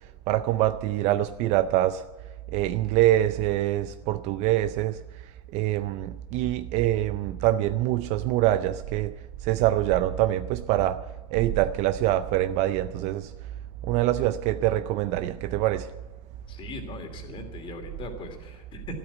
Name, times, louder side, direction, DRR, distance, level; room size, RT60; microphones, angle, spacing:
voice 1, 0.3-2.0 2.5-5.0 5.5-9.1 9.4-11.0 11.3-13.3 13.8-15.9, right 14 dB, 35° right, 0.5 m, -24 dB
voice 2, 16.5-19.0, left 2 dB, 25° left, 2.6 m, -39 dB
13.0 x 12.5 x 8.1 m
supercardioid pair, 140°, 20 cm